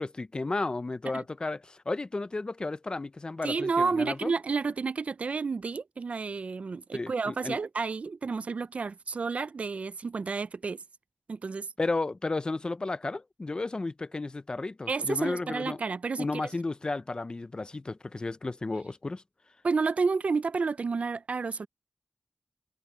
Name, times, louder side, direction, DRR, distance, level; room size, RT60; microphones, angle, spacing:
voice 1, 0.0-4.3 6.9-7.6 11.8-15.8 16.2-19.2, left 3 dB, 40° left, 0.6 m, -33 dB
voice 2, 3.4-10.8 11.3-11.7 14.9-16.4 19.6-21.7, right 4 dB, 70° right, 0.4 m, -30 dB
wide cardioid pair, 90°, 2 cm